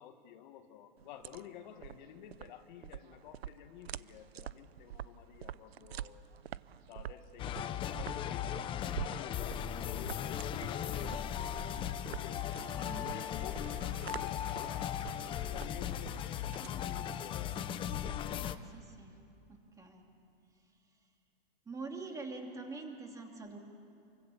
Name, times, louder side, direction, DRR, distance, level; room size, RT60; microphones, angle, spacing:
voice 1, 0.0-6.3 6.9-8.7 9.1-12.0 12.7-17.8, left 10 dB, 50° left, 7 dB, 1.8 m, -52 dB
sound 1, 1.0-18.5, right 11 dB, 90° right, 0.7 m, -47 dB
sound 2, 7.4-18.6, left 10 dB, 15° left, 0.7 m, -37 dB
Applause, 11.7-16.5, right 6 dB, 70° right, 4.6 m, -60 dB
voice 2, 12.8-13.1 18.4-19.2 19.5-20.0 21.7-23.6, right 3 dB, 10° right, 2 dB, 2.8 m, -45 dB
29.0 x 24.0 x 7.1 m, 2.6 s
hypercardioid pair, 145°, 30 cm